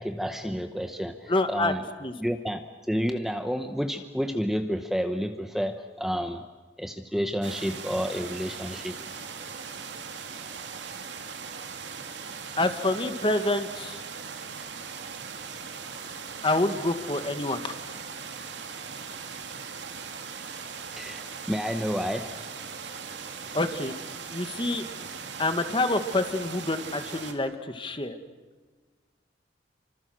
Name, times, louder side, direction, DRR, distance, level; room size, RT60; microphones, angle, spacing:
voice 1, 0.0-1.8 2.2-6.5 6.8-9.0 21.0-22.3, equal, ahead, 6 dB, 0.9 m, -30 dB
voice 2, 1.3-1.7 2.0-2.1 12.6-14.0 16.4-17.7 23.5-23.9 24.3-24.8 25.4-28.2, left 2 dB, 30° left, 8 dB, 1.7 m, -27 dB
sound 1, 7.4-27.3, right 5 dB, 80° right, 2.6 m, -39 dB
29.0 x 25.5 x 6.4 m, 1.4 s
head